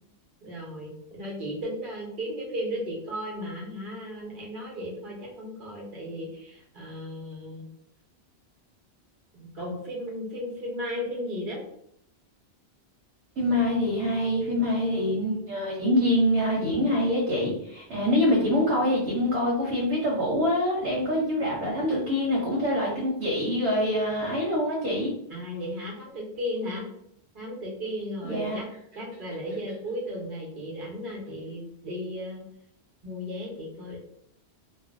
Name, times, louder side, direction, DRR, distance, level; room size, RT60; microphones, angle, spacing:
voice 1, 0.4-7.7 9.3-11.6 25.3-26.8 27.3-28.7 28.9-32.4 33.0-34.0, equal, 55° right, -3 dB, 1.0 m, -35 dB
voice 2, 13.4-25.1 28.2-28.6, left 1 dB, 85° right, -3 dB, 0.9 m, -25 dB
2.5 x 2.0 x 2.4 m, 0.73 s
omnidirectional pair, 1.1 m